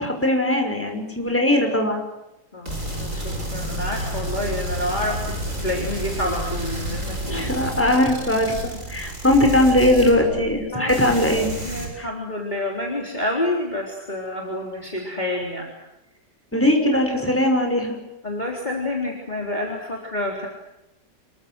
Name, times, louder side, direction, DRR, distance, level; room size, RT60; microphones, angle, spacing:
voice 1, 0.0-2.0 7.3-8.5 8.9-11.5 12.0-12.1 16.5-18.0, left 1 dB, 5° left, 3 dB, 5.7 m, -20 dB
voice 2, 2.5-5.4 5.6-7.6 8.3-8.4 10.7-11.0 11.6-15.7 16.9-17.0 18.2-20.5, left 1 dB, 25° left, -1 dB, 4.0 m, -28 dB
sound 1, 2.6-10.6 10.9-11.9, right 1 dB, 45° right, 7.2 m, -30 dB
27.0 x 23.5 x 7.9 m, 0.91 s
omnidirectional pair, 1.9 m